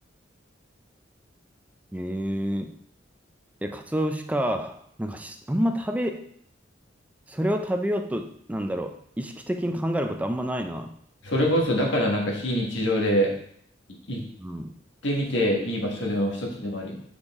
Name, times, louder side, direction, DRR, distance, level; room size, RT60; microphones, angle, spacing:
voice 1, 1.9-2.8 3.6-6.3 7.3-10.9 14.4-14.7, equal, 10° right, 6 dB, 0.4 m, -28 dB
voice 2, 11.2-13.3 14.1-14.2 15.0-17.0, equal, 65° left, -1 dB, 1.6 m, -24 dB
6.6 x 5.1 x 3.6 m, 0.65 s
head